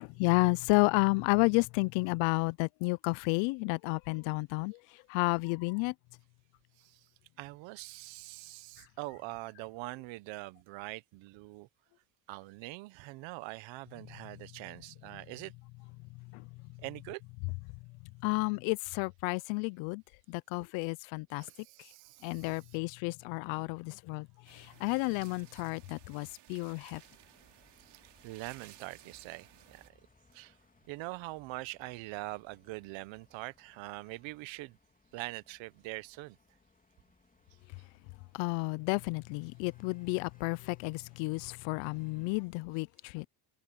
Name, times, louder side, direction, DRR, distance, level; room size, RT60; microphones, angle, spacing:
voice 1, 0.0-5.9 16.2-16.5 18.2-20.0 20.3-21.5 22.2-27.0 38.3-43.3, left 28 dB, 85° left, 0.6 m, -31 dB
voice 2, 7.4-11.7 12.3-15.5 16.8-17.2 21.3-22.6 27.9-29.8 30.3-30.5 30.9-34.8 35.1-36.4, right 21 dB, 80° right, 1.1 m, -43 dB
sound 1, 24.5-29.9, right 13 dB, 65° right, 2.8 m, -58 dB
sound 2, 26.9-42.4, left 3 dB, 20° left, 2.8 m, -68 dB
supercardioid pair, 90°, 45 cm